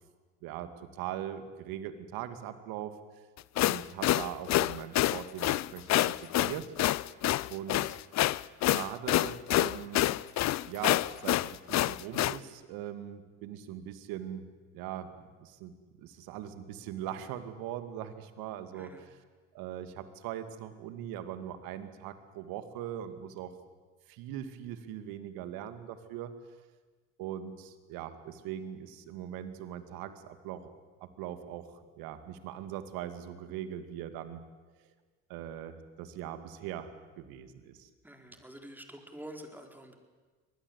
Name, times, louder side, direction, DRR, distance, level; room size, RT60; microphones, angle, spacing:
voice 1, 0.4-3.3 3.6-6.7 7.5-8.0 8.6-10.1 10.7-14.5 14.7-19.2 19.5-23.5 24.1-26.3 27.2-30.7 31.0-34.4 35.3-37.9, right 10 dB, 70° right, 10 dB, 2.4 m, -41 dB
sound 1, 3.4-12.4, left 15 dB, 45° left, 0.7 m, -27 dB
voice 2, 38.0-40.0, right 1 dB, 5° right, 4 dB, 4.5 m, -47 dB
24.5 x 20.0 x 8.3 m, 1.4 s
hypercardioid pair, 70°, 37 cm